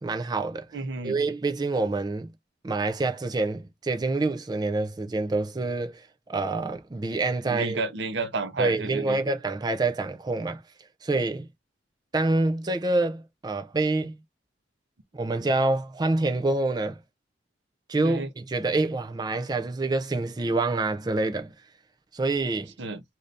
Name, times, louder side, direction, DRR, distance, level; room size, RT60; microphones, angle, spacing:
voice 1, 0.0-0.7 1.0-2.3 2.6-7.8 8.6-10.6 11.0-11.5 12.1-14.1 15.1-17.0 17.9-21.5 22.1-22.7, right 2 dB, 20° right, 0.3 m, -27 dB
voice 2, 0.7-1.2 7.4-9.2 18.0-18.3 22.8-23.0, right 3 dB, 70° right, 0.7 m, -31 dB
2.6 x 2.6 x 3.3 m
head